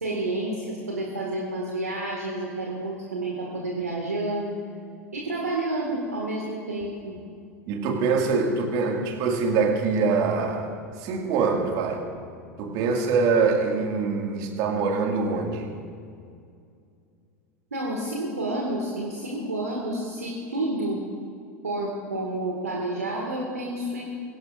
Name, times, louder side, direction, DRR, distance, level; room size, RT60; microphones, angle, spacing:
voice 1, 0.0-4.6 5.1-7.2 17.7-21.0 21.6-24.1, right 1 dB, 80° right, -3 dB, 2.0 m, -30 dB
voice 2, 7.7-10.7 11.0-12.1 12.6-15.7, right 4 dB, 50° right, 2 dB, 2.2 m, -24 dB
22.0 x 16.5 x 2.6 m, 2.4 s
figure-of-eight pair, 80°, 8 cm